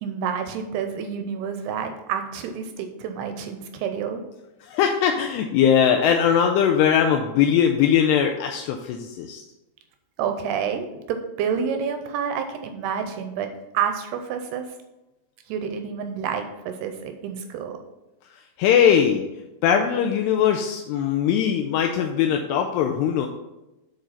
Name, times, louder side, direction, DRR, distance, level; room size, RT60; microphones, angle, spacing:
voice 1, 0.0-4.2 10.2-14.6 15.5-17.8, right 7 dB, 80° right, 6 dB, 2.5 m, -29 dB
voice 2, 4.6-9.4 18.6-19.2 19.6-23.3, left 8 dB, 85° left, 3 dB, 2.5 m, -20 dB
8.9 x 4.7 x 5.6 m, 0.99 s
omnidirectional pair, 5.1 m